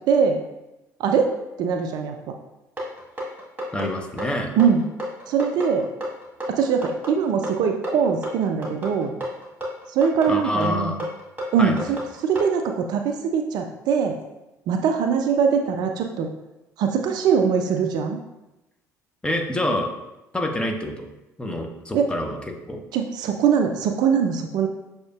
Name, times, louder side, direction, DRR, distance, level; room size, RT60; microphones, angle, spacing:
voice 1, 0.1-0.4 1.0-1.3 1.6-2.4 4.5-4.8 5.3-5.9 6.5-9.2 9.9-11.0 11.5-14.2 14.7-16.3 16.8-18.2 21.9-22.1 22.9-24.7, right 6 dB, 50° right, 4 dB, 0.4 m, -22 dB
sound 1, 2.8-12.5, equal, 15° right, 1.4 m, -31 dB
voice 2, 3.7-4.5 10.3-11.0 11.6-11.9 19.2-19.9 20.3-21.1 21.4-22.8, left 1 dB, 10° left, 3 dB, 0.7 m, -27 dB
6.3 x 2.8 x 2.3 m, 0.97 s
figure-of-eight pair, 55°, 9 cm